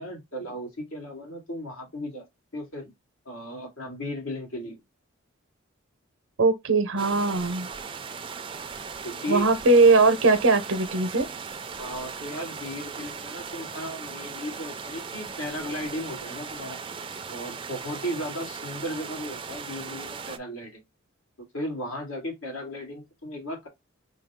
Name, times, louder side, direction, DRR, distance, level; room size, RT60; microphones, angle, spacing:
voice 1, 0.0-2.2 2.5-2.9 3.3-4.8 9.0-9.5 11.8-16.8 17.3-20.8 21.5-23.7, equal, 85° left, 2.1 m, -35 dB
voice 2, 6.4-7.7 9.3-11.3, right 3 dB, 90° right, 0.7 m, -20 dB
sound 1, 7.0-20.4, right 5 dB, 25° right, 0.4 m, -38 dB
5.3 x 2.3 x 3.5 m
head